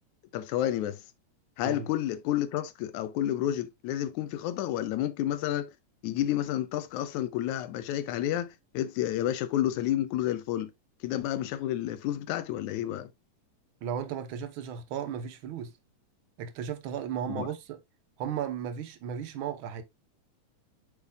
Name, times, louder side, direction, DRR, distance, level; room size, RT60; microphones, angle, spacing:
voice 1, 0.3-1.0 1.6-5.7 6.0-10.7 11.0-13.1 17.3-17.5, left 12 dB, 85° left, 2.0 m, -30 dB
voice 2, 13.8-15.7 16.4-17.8 18.2-19.8, right 8 dB, 65° right, 1.3 m, -35 dB
8.1 x 5.7 x 2.3 m
omnidirectional pair, 3.4 m